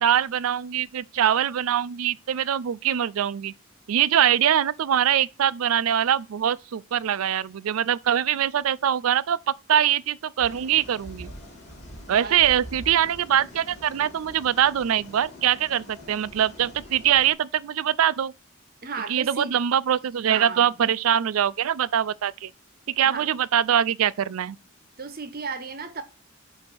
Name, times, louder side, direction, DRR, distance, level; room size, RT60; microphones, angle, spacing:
voice 1, 0.0-3.5 3.9-11.3 12.1-18.3 19.1-22.5 23.0-24.6, right 10 dB, 90° right, 0.4 m, -23 dB
newjersey OC beachsteel keeper, 10.4-17.3, equal, 35° left, 2.5 m, -44 dB
voice 2, 18.8-19.5 20.3-20.8 23.0-23.3 25.0-26.0, right 4 dB, 45° right, 0.9 m, -34 dB
7.6 x 2.8 x 6.0 m
head